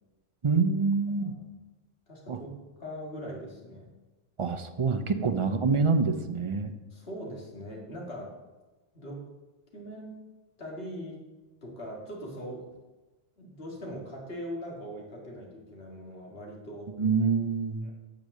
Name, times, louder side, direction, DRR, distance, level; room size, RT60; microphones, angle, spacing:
voice 1, 0.4-1.3 2.3-2.4 4.4-6.7 17.0-17.9, right 4 dB, 35° right, 8 dB, 0.6 m, -26 dB
voice 2, 2.1-2.5 2.8-3.9 5.3-5.4 6.9-8.3 8.9-9.2 9.7-10.1 10.6-11.2 11.6-12.8 13.4-16.9 17.8-17.9, equal, 75° left, -1 dB, 2.3 m, -41 dB
9.3 x 5.2 x 6.5 m, 1.1 s
omnidirectional pair, 1.0 m